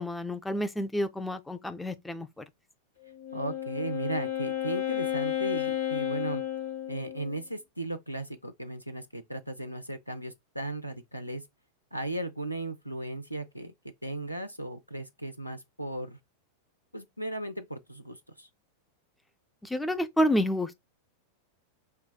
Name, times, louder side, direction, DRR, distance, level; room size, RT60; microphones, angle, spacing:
voice 1, 0.0-2.4 19.6-20.7, equal, 5° left, 0.4 m, -29 dB
Wind instrument woodwind instrument, 3.1-7.4, left 11 dB, 55° left, 1.1 m, -32 dB
voice 2, 3.3-6.4 6.9-11.4 11.9-13.7 14.0-16.2 16.9-18.5, right 1 dB, 90° left, 0.5 m, -36 dB
5.6 x 2.2 x 2.3 m
figure-of-eight pair, 90°, 0 cm